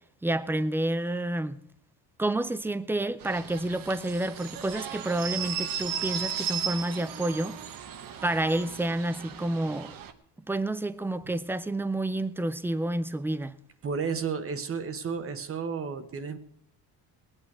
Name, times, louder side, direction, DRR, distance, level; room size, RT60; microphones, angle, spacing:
voice 1, 0.2-1.6 2.2-7.6 8.2-10.0 10.5-13.5, right 1 dB, 5° right, 0.4 m, -29 dB
washington mono bustrumpet, 3.2-10.1, right 8 dB, 55° right, 1.2 m, -36 dB
voice 2, 13.8-16.4, right 5 dB, 35° right, 1.2 m, -32 dB
21.0 x 9.0 x 4.7 m
cardioid pair, 165°, 41 cm